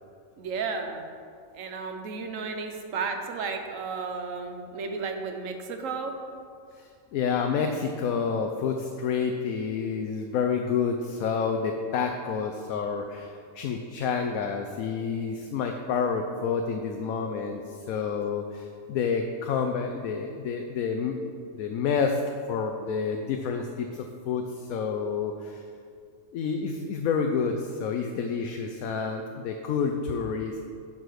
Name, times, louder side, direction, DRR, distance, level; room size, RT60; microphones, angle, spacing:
voice 1, 0.4-1.0 1.5-6.1, right 4 dB, 70° right, 5 dB, 1.2 m, -33 dB
voice 2, 6.8-22.2 22.5-25.6 26.3-30.6, left 6 dB, 85° left, 4 dB, 1.1 m, -29 dB
11.0 x 4.2 x 6.3 m, 2.3 s
omnidirectional pair, 1.4 m